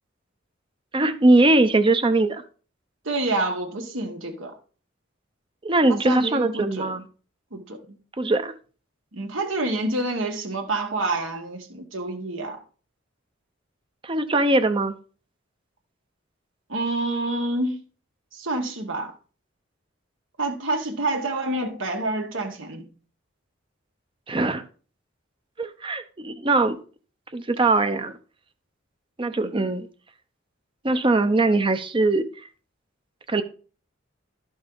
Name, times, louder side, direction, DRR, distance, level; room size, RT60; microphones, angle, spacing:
voice 1, 0.9-2.4 5.6-7.0 8.2-8.5 14.0-15.0 24.3-24.6 25.6-26.8 27.3-28.1 29.2-29.9 30.8-32.3 33.3-33.4, right 2 dB, 25° right, 0.6 m, -21 dB
voice 2, 3.0-4.6 5.9-6.9 7.5-8.0 9.1-12.6 16.7-17.8 18.3-19.1 20.4-22.9 29.4-29.7, right 2 dB, 80° right, 1.6 m, -28 dB
12.5 x 5.4 x 3.9 m
head